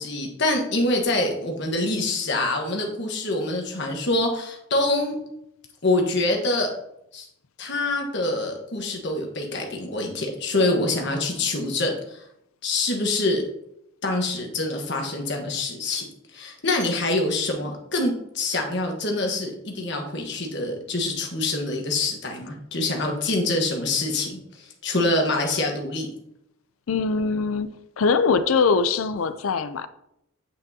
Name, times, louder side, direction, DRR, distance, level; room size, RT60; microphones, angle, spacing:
voice 1, 0.0-5.2 5.8-6.7 7.1-7.3 7.6-12.2 12.6-13.4 14.0-16.1 16.3-26.1, left 2 dB, 55° left, 1.3 m, -25 dB
voice 2, 26.9-27.7 28.0-29.9, left 5 dB, 85° left, 0.5 m, -22 dB
8.5 x 5.2 x 2.8 m
head